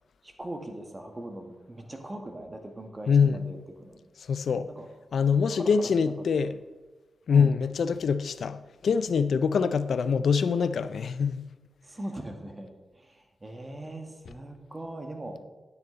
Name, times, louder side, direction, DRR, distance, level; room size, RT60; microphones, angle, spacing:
voice 1, 0.2-4.0 4.7-4.9 5.5-6.5 7.3-7.6 11.8-15.4, right 1 dB, 30° right, 1.8 m, -41 dB
voice 2, 3.1-3.5 4.3-4.7 5.1-6.6 7.3-11.5, left 6 dB, 75° left, 0.4 m, -24 dB
9.8 x 8.5 x 4.0 m
supercardioid pair, 40°, 0 cm